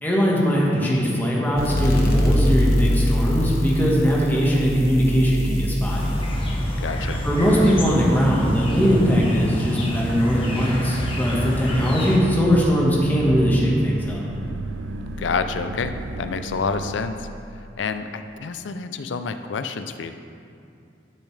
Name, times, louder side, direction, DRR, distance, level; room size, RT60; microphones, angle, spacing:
voice 1, 0.0-6.1 7.2-14.2, equal, 10° left, -5 dB, 1.4 m, -20 dB
sound 1, 1.6-8.8, left 1 dB, 55° left, 1.1 m, -24 dB
sound 2, 5.9-12.2, equal, 30° left, 1.1 m, -29 dB
voice 2, 6.8-7.2 15.2-17.3 17.8-20.1, left 5 dB, 80° left, 9 dB, 0.5 m, -28 dB
sound 3, 7.0-17.1, right 2 dB, 80° right, 0.4 m, -33 dB
12.0 x 6.4 x 3.3 m, 2.5 s
head